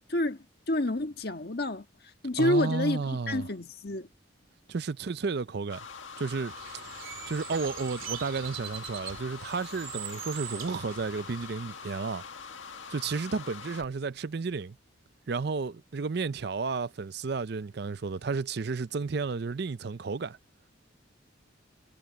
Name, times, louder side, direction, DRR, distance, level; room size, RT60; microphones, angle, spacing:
voice 1, 0.1-1.8 2.2-4.1, left 1 dB, 50° left, 1.6 m, -29 dB
voice 2, 2.4-3.5 4.7-5.8 6.2-6.5 7.3-12.2 12.9-14.8 15.3-20.4, right 4 dB, 55° right, 0.5 m, -32 dB
sound 1, 5.7-13.9, left 5 dB, 80° left, 1.8 m, -44 dB
Bird, 6.5-11.5, right 10 dB, 90° right, 2.8 m, -42 dB
head